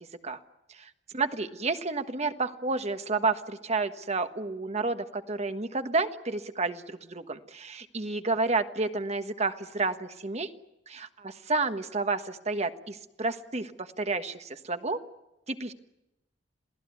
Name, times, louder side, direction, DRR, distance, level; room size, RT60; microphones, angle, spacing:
voice 1, 0.7-10.5 10.9-15.0 15.5-15.7, right 3 dB, 35° right, 9 dB, 1.4 m, -30 dB
27.5 x 17.5 x 9.5 m, 0.93 s
head